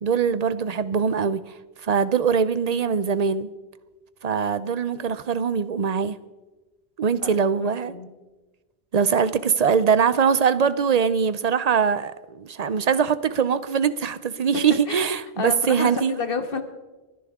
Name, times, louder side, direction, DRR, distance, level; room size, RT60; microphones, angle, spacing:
voice 1, 0.0-1.4 1.8-3.5 4.2-6.2 7.0-7.9 8.9-16.1, right 6 dB, 45° right, 0.6 m, -22 dB
voice 2, 7.6-8.1 14.5-15.0 15.4-16.6, left 4 dB, 60° left, 1.4 m, -29 dB
30.0 x 10.5 x 3.6 m
omnidirectional pair, 1.1 m